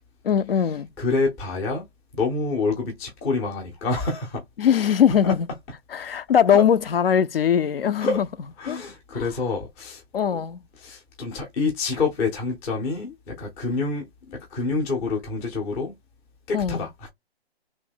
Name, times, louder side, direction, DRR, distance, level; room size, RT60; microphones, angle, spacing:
voice 1, 0.2-0.9 4.6-5.4 5.9-8.2 8.7-8.8 10.1-10.6 16.5-16.8, left 8 dB, 60° left, 0.5 m, -20 dB
voice 2, 1.0-1.9 2.1-4.4 5.2-5.4 6.5-6.6 8.0-8.2 8.6-10.0 10.8-16.0 16.5-17.1, left 3 dB, 10° left, 0.5 m, -27 dB
3.0 x 2.6 x 3.7 m
figure-of-eight pair, 140°, 32 cm